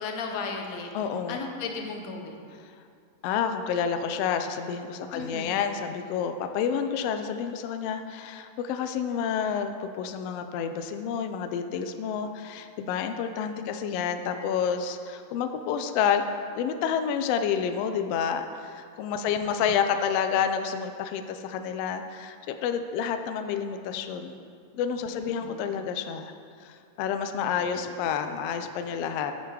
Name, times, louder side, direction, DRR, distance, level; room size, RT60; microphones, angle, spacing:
voice 1, 0.0-0.9 1.3-2.5 5.1-5.6 25.1-25.6, left 4 dB, 70° left, 3 dB, 1.9 m, -35 dB
voice 2, 0.9-1.4 3.2-16.2 16.5-24.4 24.7-26.3 26.6-29.3, left 7 dB, 90° left, 7 dB, 1.4 m, -29 dB
8.1 x 6.9 x 4.8 m, 2.2 s
omnidirectional pair, 3.3 m